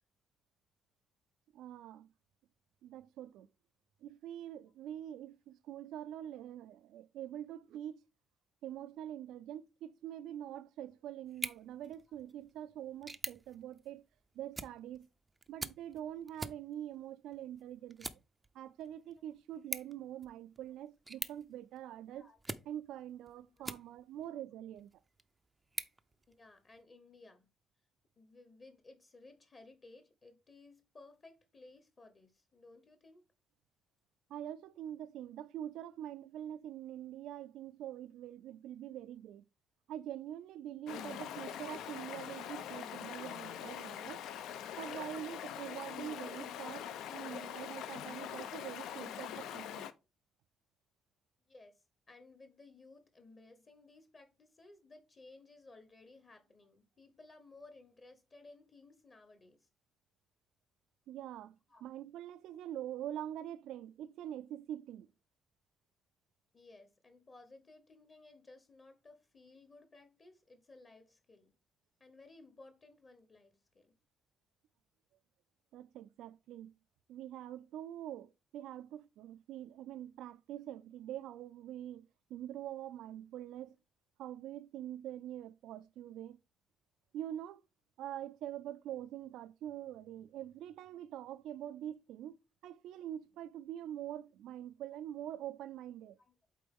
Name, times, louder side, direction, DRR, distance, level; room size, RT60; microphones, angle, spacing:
voice 1, 1.5-2.1 2.8-3.5 4.0-8.0 8.6-14.0 14.3-15.1 15.5-18.2 18.5-22.3 22.6-24.9 34.3-39.4 39.9-44.2 44.8-49.9 61.1-65.1 75.7-76.7 77.1-83.8 84.2-86.4 87.1-87.6 88.0-92.4 92.6-96.2, right 11 dB, 85° right, 0.4 m, -45 dB
sound 1, 11.3-24.3 24.8-26.8, right 2 dB, 15° right, 0.4 m, -47 dB
voice 2, 23.4-23.7 24.3-24.4 26.3-27.5 28.2-33.2 51.5-59.7 61.7-61.9 66.5-71.5 72.0-73.9 96.2-96.3, left 3 dB, 25° left, 0.8 m, -58 dB
Stream, 40.9-49.9, left 9 dB, 85° left, 0.6 m, -43 dB
8.4 x 3.9 x 3.5 m
cardioid pair, 175°, 0 cm